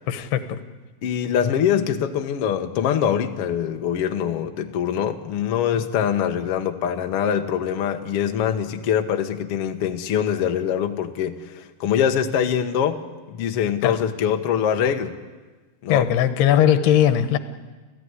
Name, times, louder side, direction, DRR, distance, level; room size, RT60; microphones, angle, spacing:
voice 1, 0.1-0.6 13.8-14.0 15.9-17.4, left 10 dB, 85° left, 10 dB, 3.2 m, -19 dB
voice 2, 1.0-15.1 15.8-16.1, left 8 dB, 70° left, 5 dB, 1.4 m, -23 dB
29.5 x 15.0 x 9.7 m, 1.3 s
omnidirectional pair, 4.6 m